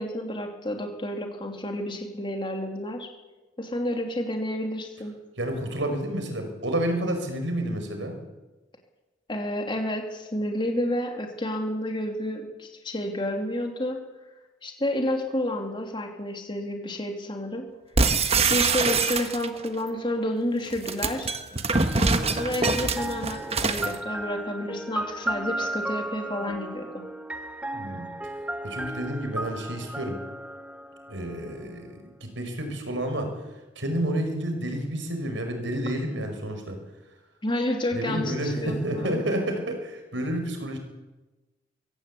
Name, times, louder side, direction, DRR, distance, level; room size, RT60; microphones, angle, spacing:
voice 1, 0.0-3.1 3.6-5.1 9.3-14.0 14.6-17.7 18.5-21.3 22.0-27.0 37.4-39.2, left 1 dB, 25° left, 3 dB, 2.8 m, -30 dB
voice 2, 5.4-8.2 27.7-28.3 28.6-30.2 31.1-33.3 33.8-36.8 37.9-40.8, right 1 dB, 80° right, 6 dB, 5.3 m, -30 dB
sound 1, 18.0-19.7 20.7-24.0, right 4 dB, 35° right, 1.4 m, -24 dB
sound 2, 21.7-31.5, right 1 dB, 5° right, 0.8 m, -35 dB
23.5 x 16.0 x 8.4 m, 1.1 s
head